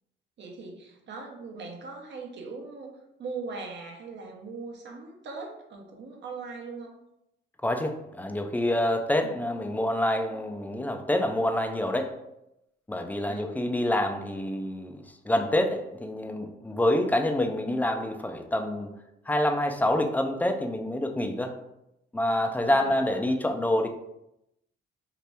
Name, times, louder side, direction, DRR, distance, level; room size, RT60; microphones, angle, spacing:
voice 1, 0.4-7.0 9.2-9.4 13.2-13.5 22.6-23.0, right 4 dB, 65° right, 1 dB, 0.8 m, -40 dB
voice 2, 7.6-12.2 12.9-18.9 19.3-21.6 22.1-23.9, left 1 dB, 10° left, 5 dB, 0.4 m, -27 dB
2.8 x 2.5 x 3.3 m, 0.85 s
cardioid pair, 90°, 20 cm